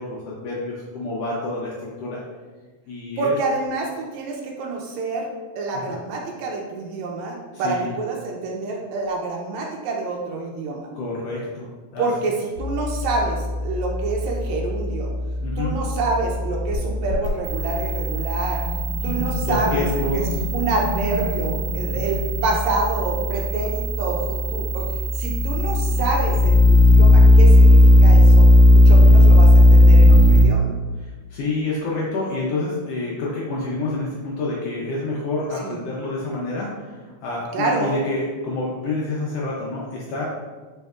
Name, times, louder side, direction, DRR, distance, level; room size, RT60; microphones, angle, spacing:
voice 1, 0.0-1.7 2.0-2.2 2.9-3.3 5.7-6.0 7.5-7.9 10.9-12.1 15.4-15.8 19.1-20.4 21.9-22.1 28.9-29.4 31.0-40.3, left 2 dB, 75° left, -4 dB, 1.5 m, -28 dB
voice 2, 3.2-5.3 5.6-10.9 12.0-15.1 15.6-18.6 19.0-19.9 20.1-20.2 20.5-30.7 35.6-35.8 37.5-37.9, right 3 dB, 75° right, 0 dB, 1.8 m, -27 dB
sound 1, 12.6-30.4, left 1 dB, 50° right, 1.9 m, -16 dB
5.3 x 4.3 x 2.3 m, 1.3 s
omnidirectional pair, 3.4 m